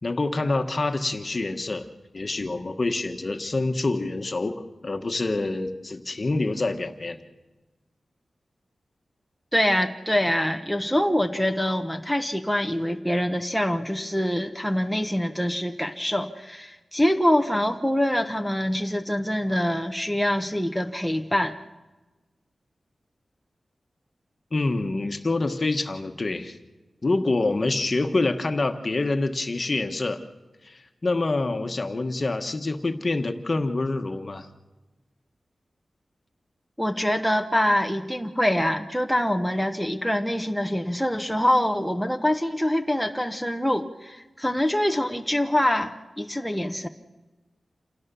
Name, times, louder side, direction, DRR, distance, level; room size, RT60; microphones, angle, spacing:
voice 1, 0.0-1.9 2.1-7.2 24.5-26.6 27.0-30.2 30.6-34.5, left 2 dB, 40° left, 6 dB, 1.4 m, -26 dB
voice 2, 9.5-21.6 36.8-46.9, left 1 dB, ahead, 4 dB, 1.0 m, -25 dB
28.0 x 17.5 x 7.0 m, 1.2 s
wide cardioid pair, 115°, 0 cm